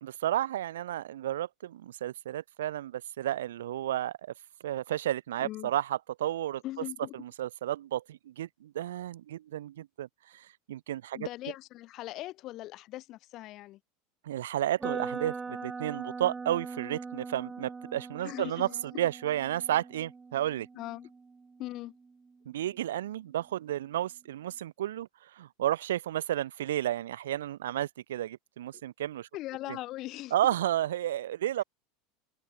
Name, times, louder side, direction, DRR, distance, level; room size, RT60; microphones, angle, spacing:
voice 1, 0.0-4.3 4.6-6.6 7.1-10.1 10.3-11.3 14.2-18.7 18.9-20.7 22.5-29.3 29.7-29.8 30.3-31.6, right 12 dB, 75° right, 0.4 m, -32 dB
voice 2, 5.4-5.7 6.6-7.1 11.1-13.8 18.2-19.0 20.7-21.1 21.6-21.9 29.3-30.3, left 16 dB, 50° left, 1.2 m, -40 dB
sound 1, 14.8-22.7, right 4 dB, 20° right, 2.3 m, -41 dB
hypercardioid pair, 85°, 0 cm